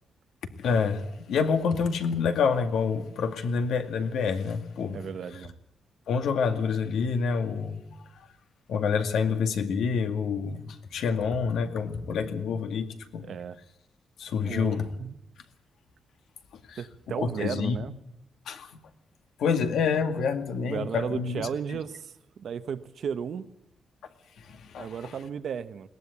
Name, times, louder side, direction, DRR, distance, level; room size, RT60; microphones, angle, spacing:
voice 1, 0.6-5.0 6.1-7.8 8.7-13.3 14.2-14.9 16.7-16.8 17.2-17.8 18.5-18.7 19.4-21.5 24.4-24.9, left 5 dB, 75° left, 6 dB, 2.2 m, -27 dB
voice 2, 4.9-5.6 13.2-13.6 14.4-15.2 16.8-17.9 20.6-23.5 24.8-25.9, right 7 dB, 50° right, 12 dB, 1.0 m, -34 dB
21.5 x 18.5 x 8.5 m, 0.83 s
wide cardioid pair, 175°, 0 cm